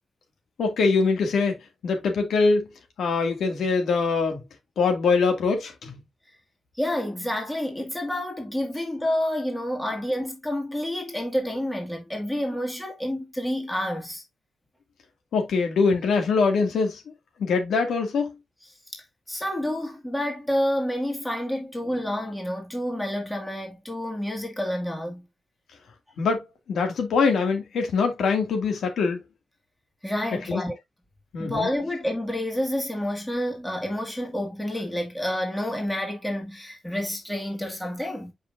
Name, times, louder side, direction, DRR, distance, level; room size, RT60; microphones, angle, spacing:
voice 1, 0.6-2.7 3.0-4.4 4.8-6.0 15.3-17.0 17.4-18.3 26.2-29.2 30.5-30.6 31.3-31.7, left 4 dB, 85° left, 2.2 m, -23 dB
voice 2, 6.8-14.2 18.9-25.3 30.0-30.7 31.4-38.3, left 1 dB, 5° left, 1.9 m, -29 dB
7.5 x 5.5 x 2.6 m
wide cardioid pair, 175°, 0 cm